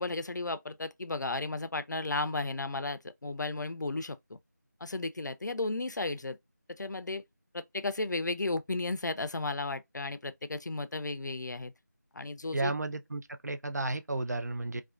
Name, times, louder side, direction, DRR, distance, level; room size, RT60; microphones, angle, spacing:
voice 1, 0.0-4.4 4.8-6.4 6.7-7.2 7.5-11.7 12.1-12.7, left 2 dB, 70° left, 0.4 m, -34 dB
voice 2, 12.5-14.8, right 2 dB, 60° right, 0.4 m, -33 dB
2.5 x 2.3 x 2.3 m
figure-of-eight pair, 175°, 10 cm